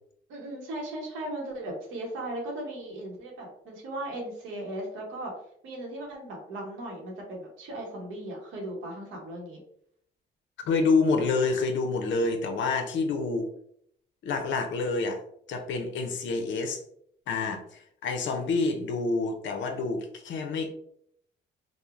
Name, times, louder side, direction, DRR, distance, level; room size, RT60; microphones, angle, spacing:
voice 1, 0.3-5.3 5.6-9.6, right 1 dB, 90° right, -2 dB, 0.8 m, -37 dB
voice 2, 10.6-13.5 14.2-15.2 15.5-16.8 17.3-20.7, left 3 dB, 70° left, 5 dB, 0.5 m, -27 dB
2.9 x 2.0 x 2.4 m, 0.69 s
cardioid pair, 90°, 20 cm